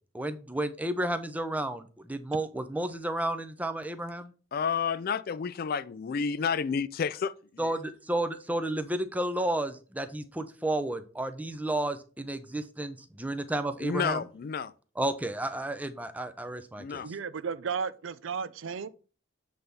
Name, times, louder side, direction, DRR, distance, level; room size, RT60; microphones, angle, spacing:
voice 1, 0.1-4.3 7.6-14.2 15.0-17.0, right 1 dB, 10° right, 0.6 m, -32 dB
voice 2, 4.5-7.7 13.8-14.7 16.8-17.1, left 6 dB, 50° left, 0.4 m, -31 dB
voice 3, 17.0-18.9, right 6 dB, 80° right, 0.5 m, -34 dB
7.8 x 3.5 x 5.4 m
head